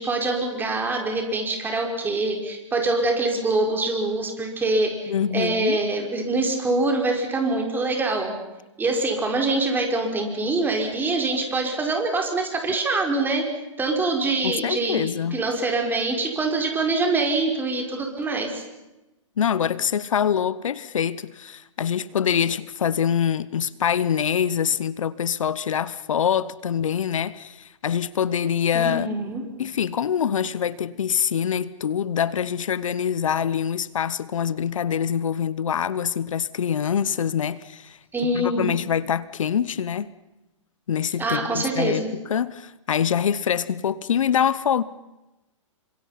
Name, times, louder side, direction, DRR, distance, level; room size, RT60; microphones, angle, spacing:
voice 1, 0.0-8.3 8.8-13.4 13.8-18.6 28.7-29.4 38.1-38.7 41.2-42.1, right 2 dB, 10° right, 5.0 m, -24 dB
voice 2, 5.1-5.8 14.4-15.4 19.4-29.1 29.6-40.1 40.9-44.8, left 8 dB, 75° left, 1.0 m, -25 dB
29.0 x 26.0 x 5.9 m
hypercardioid pair, 130°, 17 cm